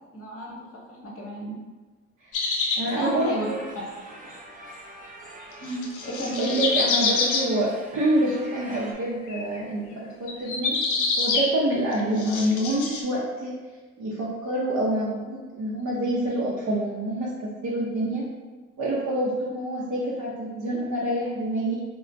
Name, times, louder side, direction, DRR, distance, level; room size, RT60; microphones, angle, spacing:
voice 1, 0.1-1.6 3.0-3.5 5.6-6.6, equal, 45° left, -2 dB, 0.9 m, -32 dB
sound 1, 2.3-2.8 5.6-7.5 8.5-8.8 9.3-9.6 10.3-11.5 11.9-13.0, left 4 dB, 80° left, 0.5 m, -26 dB
voice 2, 2.8-3.6 4.3-4.4 6.4-10.8 11.2-13.6 14.0-18.3 18.8-21.8, right 1 dB, 65° right, -5 dB, 0.7 m, -27 dB
sound 2, 3.2-8.9, right 2 dB, 25° right, 0.5 m, -44 dB
3.2 x 2.1 x 2.5 m, 1.3 s
supercardioid pair, 60°, 30 cm